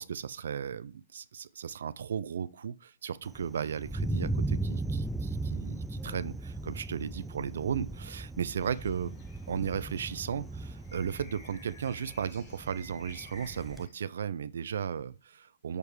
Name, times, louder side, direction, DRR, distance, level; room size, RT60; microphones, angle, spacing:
voice 1, 0.0-9.1 9.5-15.8, right 7 dB, 75° right, 0.4 m, -35 dB
Thunder, 3.2-13.9, right 2 dB, 5° right, 0.3 m, -37 dB
sound 1, 8.6-13.9, left 1 dB, 35° left, 3.3 m, -53 dB
6.6 x 3.3 x 4.6 m
hypercardioid pair, 130°, 0 cm